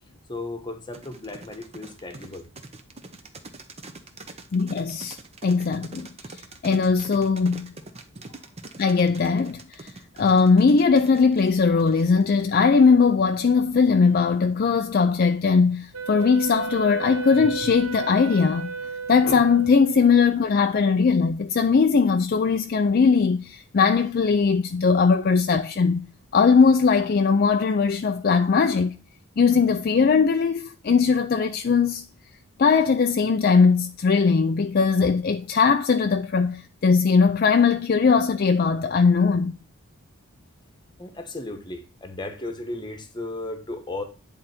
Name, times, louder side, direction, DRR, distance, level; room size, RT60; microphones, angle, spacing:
voice 1, 0.3-2.5 8.2-8.4 41.0-44.0, left 2 dB, 20° left, 1.1 m, -35 dB
sound 1, 0.9-12.4, right 2 dB, 30° right, 0.8 m, -43 dB
voice 2, 4.5-5.2 5.4-7.7 8.8-9.9 10.2-18.7 19.1-26.0 26.3-28.9 29.4-32.0 32.6-39.5, left 5 dB, 45° left, 0.4 m, -20 dB
Wind instrument woodwind instrument, 15.9-20.3, right 5 dB, 70° right, 1.1 m, -34 dB
9.7 x 3.9 x 4.2 m
head